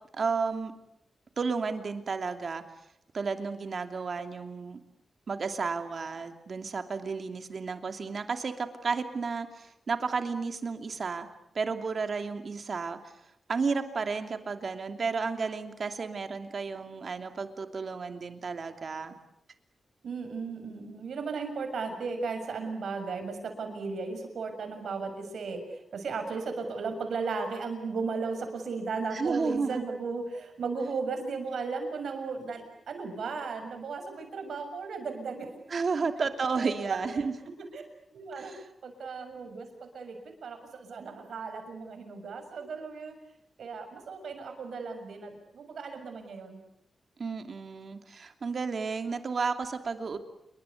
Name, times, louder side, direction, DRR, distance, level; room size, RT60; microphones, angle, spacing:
voice 1, 0.1-0.7 1.4-2.6 3.1-4.8 5.3-11.3 11.5-13.1 13.5-19.2 29.1-29.8 35.7-37.3 38.3-38.6 47.2-50.2, right 4 dB, 50° right, 7 dB, 2.8 m, -32 dB
voice 2, 20.0-35.5 36.1-36.2 36.6-37.3 37.7-37.8 38.1-38.5 38.8-40.2 40.4-43.1 43.6-46.6, right 4 dB, 80° right, 7 dB, 6.7 m, -36 dB
28.5 x 23.5 x 8.4 m, 0.79 s
wide cardioid pair, 135°, 0 cm